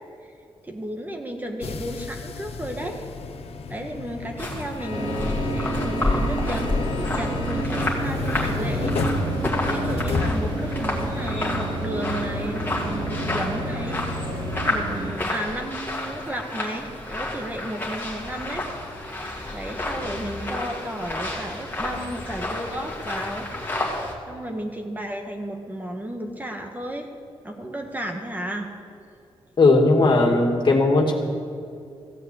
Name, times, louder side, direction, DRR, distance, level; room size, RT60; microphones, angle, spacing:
voice 1, 0.6-3.0 3.7-9.0 9.7-14.0 14.7-18.6 19.5-23.5 24.2-27.1 27.4-28.7, right 1 dB, 15° right, 3 dB, 1.4 m, -33 dB
sound 1, 1.6-11.4, left 4 dB, 80° left, 1.0 m, -33 dB
sound 2, 4.4-24.1, left 2 dB, 20° left, 2.3 m, -30 dB
sound 3, 4.9-15.1, right 1 dB, 50° right, 3.5 m, -29 dB
voice 2, 29.6-31.1, left 3 dB, 50° left, 1 dB, 2.1 m, -17 dB
15.5 x 8.3 x 8.2 m, 2.4 s
cardioid pair, 105°, 10 cm